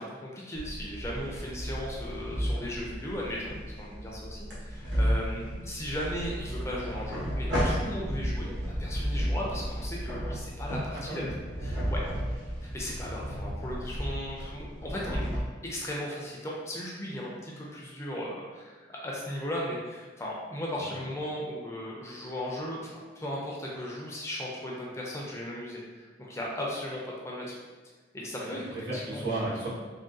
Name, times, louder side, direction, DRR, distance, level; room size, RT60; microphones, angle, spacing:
voice 1, 0.0-12.0 12.7-15.3 15.6-27.6 28.1-28.6 28.9-29.3, left 1 dB, 15° left, -4 dB, 0.4 m, -37 dB
sound 1, 0.5-15.4, equal, 70° right, 0.9 m, -33 dB
voice 2, 28.3-29.7, right 2 dB, 90° right, -10 dB, 1.4 m, -34 dB
3.5 x 2.2 x 2.6 m, 1.3 s
head